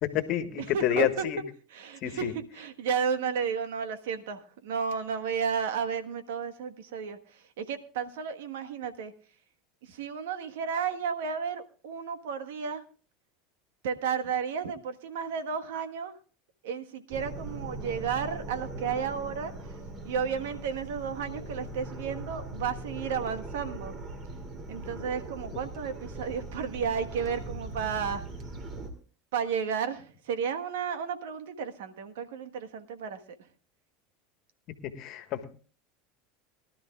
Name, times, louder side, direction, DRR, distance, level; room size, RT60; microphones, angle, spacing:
voice 1, 0.0-1.4 2.0-2.3 34.7-35.5, left 12 dB, 55° left, 10 dB, 1.4 m, -29 dB
voice 2, 0.7-1.3 1.7-9.1 9.8-12.8 13.8-16.2 16.6-24.0 24.7-28.3 29.3-33.5, right 6 dB, 75° right, 8 dB, 1.4 m, -33 dB
sound 1, 17.1-28.9, right 2 dB, 40° right, 3.0 m, -40 dB
23.0 x 12.5 x 2.4 m, 0.39 s
hypercardioid pair, 90°, 0 cm